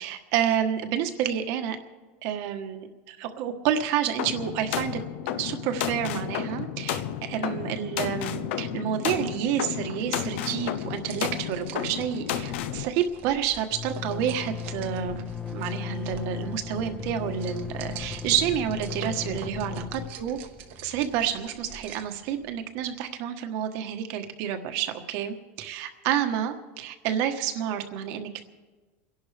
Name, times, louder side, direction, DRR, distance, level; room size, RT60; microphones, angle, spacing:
voice 1, 0.0-1.8 2.2-5.0 5.4-15.2 15.5-20.4 20.8-28.4, right 9 dB, 50° right, 7 dB, 1.3 m, -29 dB
sound 1, 4.2-12.8, left 10 dB, 70° left, 0.8 m, -32 dB
sound 2, 9.9-22.2, right 9 dB, 80° right, 1.3 m, -46 dB
sound 3, 11.0-11.2 11.5-11.6 11.8-22.5, left 7 dB, 15° left, 0.5 m, -37 dB
29.5 x 11.5 x 3.4 m, 1.3 s
supercardioid pair, 170°, 7 cm